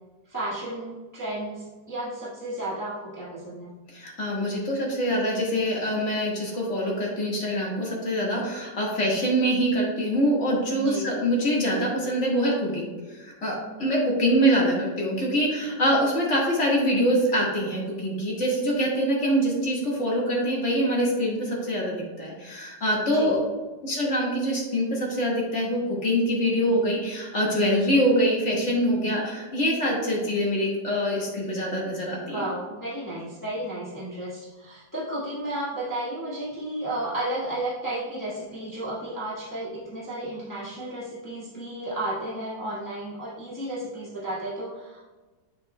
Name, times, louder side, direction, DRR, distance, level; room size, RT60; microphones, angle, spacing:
voice 1, 0.3-3.7 10.8-11.2 23.1-23.3 32.3-45.0, right 1 dB, 10° left, -9 dB, 1.6 m, -33 dB
voice 2, 3.9-23.4 23.8-32.4, equal, 40° left, -4 dB, 1.9 m, -24 dB
7.9 x 6.9 x 2.2 m, 1.2 s
omnidirectional pair, 2.0 m